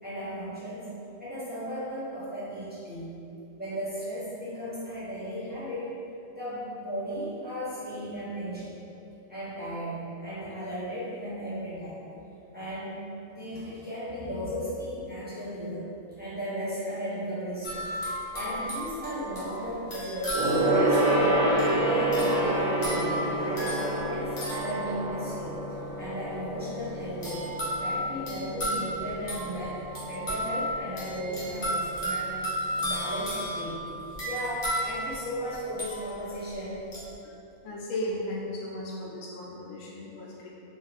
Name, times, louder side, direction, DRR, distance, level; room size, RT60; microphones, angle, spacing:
voice 1, 0.0-0.9 1.2-3.2 3.6-5.9 6.3-8.8 9.3-12.0 12.5-13.0 13.3-17.9 18.3-21.5 21.8-33.8 34.2-36.8, equal, 10° right, -12 dB, 0.6 m, -35 dB
sound 1, 17.6-25.5 27.2-36.4 36.9-37.1, equal, 45° left, 1.1 m, -34 dB
Gong, 20.3-30.1 30.4-30.7 31.0-31.1, right 1 dB, 90° right, 1.0 m, -28 dB
voice 2, 37.6-40.5, left 1 dB, 85° left, -4 dB, 1.0 m, -35 dB
2.5 x 2.4 x 3.2 m, 2.7 s
omnidirectional pair, 1.3 m